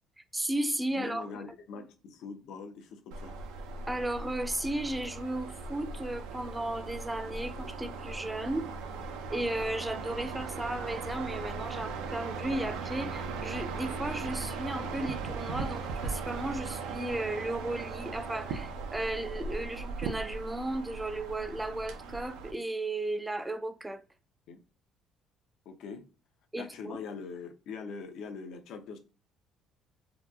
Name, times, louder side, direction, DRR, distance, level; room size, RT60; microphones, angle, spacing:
voice 1, 0.3-1.3 3.9-8.7 9.3-24.0 26.5-27.0, right 1 dB, 10° right, 0.3 m, -35 dB
voice 2, 0.9-3.6 24.5-24.6 25.7-26.0 26.5-29.0, left 5 dB, 70° left, 0.5 m, -43 dB
sound 1, 3.1-22.5, right 4 dB, 90° right, 0.4 m, -38 dB
2.8 x 2.2 x 2.3 m
cardioid pair, 90°, 0 cm